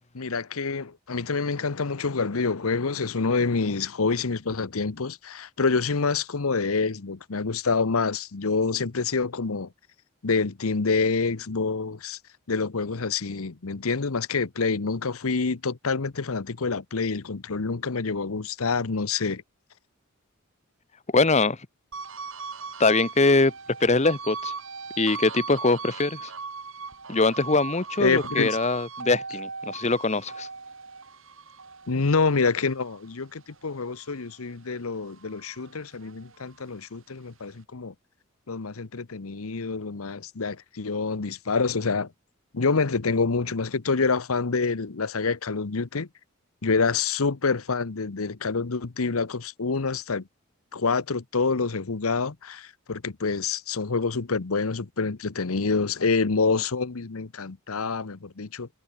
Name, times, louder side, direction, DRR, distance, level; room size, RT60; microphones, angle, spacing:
voice 1, 0.1-9.7 10.2-12.2 12.5-19.4 28.0-28.5 31.9-37.9 38.5-42.1 42.5-46.1 46.6-50.2 50.7-58.7, left 4 dB, 80° left, 0.9 m, -27 dB
voice 2, 21.1-21.6 22.8-23.5 23.8-24.5 25.0-26.3 27.1-30.5, left 3 dB, 30° left, 1.1 m, -22 dB
sound 1, 21.9-34.5 34.9-36.6, right 5 dB, 65° right, 3.5 m, -39 dB
head